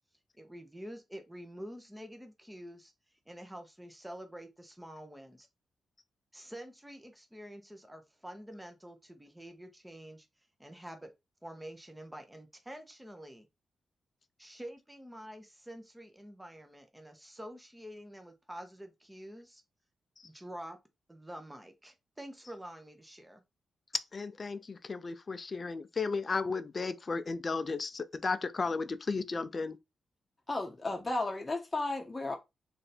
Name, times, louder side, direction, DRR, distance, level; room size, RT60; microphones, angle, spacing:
voice 1, 0.4-2.9 3.3-5.5 6.3-10.3 10.6-11.1 11.4-13.5 14.4-19.6 20.2-20.8 21.1-23.4, equal, 10° right, 0.8 m, -47 dB
voice 2, 24.1-29.8, left 4 dB, 40° left, 0.4 m, -34 dB
voice 3, 30.5-32.4, left 2 dB, 25° left, 0.9 m, -34 dB
3.3 x 2.6 x 4.2 m
cardioid pair, 85°, 0 cm